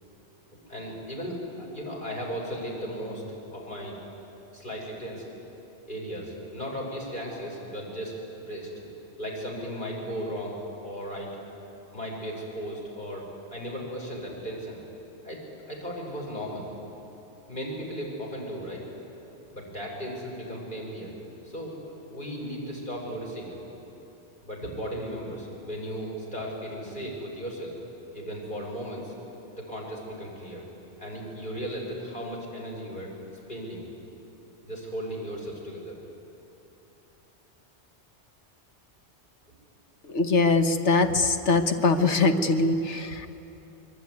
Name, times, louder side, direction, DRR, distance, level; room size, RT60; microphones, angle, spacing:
voice 1, 0.5-3.2 3.5-3.9 4.5-5.2 5.9-8.7 9.2-10.5 10.8-11.3 11.9-14.8 15.2-15.4 15.7-16.7 17.5-18.8 19.5-21.1 21.4-21.7 22.1-23.6 24.4-27.8 28.1-29.1 29.6-30.6 31.0-33.1 33.5-33.8 34.6-36.0, equal, 45° left, -2 dB, 6.4 m, -36 dB
voice 2, 40.1-43.3, left 3 dB, 80° left, 7 dB, 1.5 m, -22 dB
25.0 x 22.5 x 9.6 m, 3.0 s
omnidirectional pair, 1.2 m